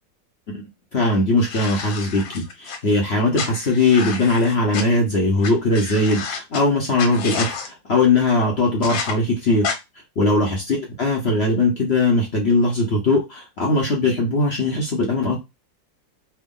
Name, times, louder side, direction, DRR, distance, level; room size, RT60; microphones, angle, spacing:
voice 1, 0.9-9.6 10.2-15.4, left 2 dB, 50° left, -1 dB, 0.8 m, -20 dB
sound 1, 1.4-2.8 3.3-4.8 5.4-5.5 5.7-6.6 7.0-7.7 8.8-9.1 9.6-9.8, left 5 dB, 75° left, 1.5 m, -29 dB
3.5 x 2.2 x 3.6 m, 0.23 s
omnidirectional pair, 2.1 m